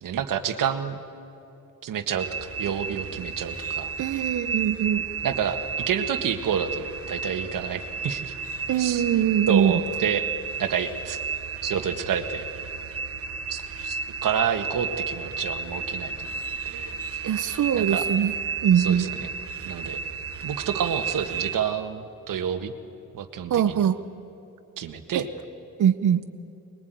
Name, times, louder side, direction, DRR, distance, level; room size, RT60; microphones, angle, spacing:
voice 1, 0.0-1.0 1.8-3.9 5.2-5.6 5.9-8.3 8.8-9.0 9.5-10.2 10.6-11.2 11.6-12.5 13.5-16.3 16.7-17.0 17.8-18.0 18.8-19.3 19.7-20.0 20.4-22.7 23.1-23.8 24.8-25.3, right 8 dB, 85° right, 7 dB, 1.7 m, -29 dB
sound 1, 2.2-21.5, right 5 dB, 45° right, 1.3 m, -32 dB
voice 2, 4.0-5.0 8.7-9.8 17.2-18.3 18.6-19.1 23.5-24.0 25.1-25.3 25.8-26.2, right 9 dB, 65° right, 12 dB, 1.0 m, -22 dB
25.0 x 21.5 x 9.3 m, 2.9 s
wide cardioid pair, 160°, 32 cm